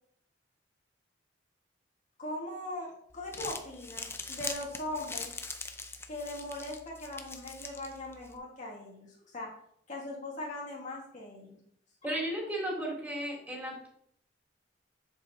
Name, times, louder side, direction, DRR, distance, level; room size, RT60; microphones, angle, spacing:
voice 1, 2.2-5.3 6.1-9.5 9.9-11.6, left 1 dB, 45° left, -3 dB, 1.7 m, -40 dB
Crumpling crinkling, 3.1-8.4, left 3 dB, 15° left, 0.6 m, -42 dB
voice 2, 12.0-13.9, equal, 10° right, -4 dB, 3.1 m, -34 dB
7.8 x 7.1 x 2.8 m, 0.67 s
head